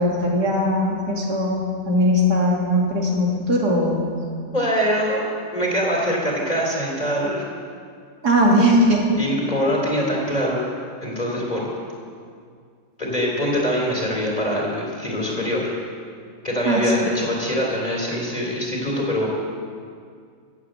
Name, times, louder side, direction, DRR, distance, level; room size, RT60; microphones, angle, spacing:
voice 1, 0.0-4.0 8.2-9.0 16.6-16.9, equal, 75° right, -2 dB, 2.9 m, -19 dB
voice 2, 4.5-5.2 5.5-7.4 9.2-10.6 11.0-11.7 13.0-15.7 16.4-19.3, equal, 25° left, -3 dB, 3.5 m, -23 dB
16.0 x 8.6 x 7.9 m, 2.2 s
omnidirectional pair, 1.8 m